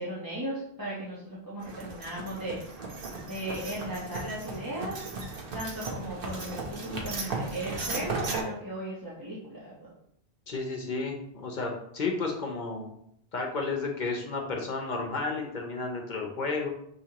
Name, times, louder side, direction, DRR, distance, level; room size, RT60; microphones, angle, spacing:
voice 1, 0.0-2.8 3.3-5.0 5.5-9.9, right 1 dB, 20° right, -8 dB, 0.8 m, -36 dB
sound 1, 1.6-8.4, right 3 dB, 60° right, 0.9 m, -36 dB
voice 2, 10.5-12.9 13.3-16.7, left 3 dB, 50° left, 1 dB, 0.8 m, -32 dB
6.0 x 2.8 x 2.9 m, 0.74 s
omnidirectional pair, 1.1 m